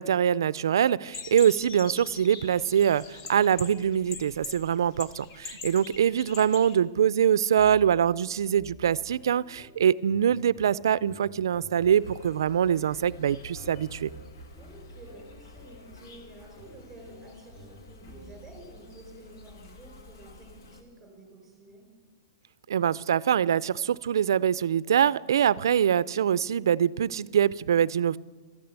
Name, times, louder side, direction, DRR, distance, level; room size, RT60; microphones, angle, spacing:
voice 1, 0.0-14.1 22.7-28.2, right 9 dB, 80° right, 20 dB, 0.4 m, -24 dB
sound 1, 1.1-6.7, left 5 dB, 30° left, 1.0 m, -43 dB
sound 2, 7.6-18.7, right 1 dB, 15° left, 1.9 m, -52 dB
Insect, 11.8-20.8, left 2 dB, 65° left, 1.8 m, -49 dB
voice 2, 14.5-21.9, right 1 dB, 5° right, 2 dB, 4.1 m, -50 dB
13.5 x 10.5 x 8.1 m, 1.3 s
hypercardioid pair, 165°, 2 cm